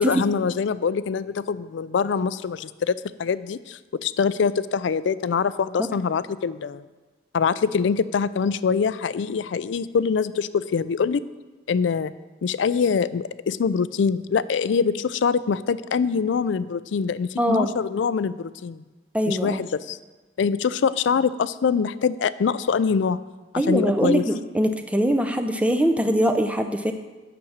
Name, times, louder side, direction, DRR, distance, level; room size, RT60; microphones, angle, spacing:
voice 1, 0.0-2.9 3.2-6.8 7.3-11.2 11.7-12.1 12.4-18.8 19.3-20.0 20.4-23.2 23.5-24.2, left 6 dB, 80° left, 16 dB, 0.4 m, -24 dB
voice 2, 17.4-17.7 19.1-19.6 23.6-26.9, equal, 5° right, 6 dB, 0.5 m, -22 dB
8.9 x 6.1 x 7.2 m, 1.2 s
head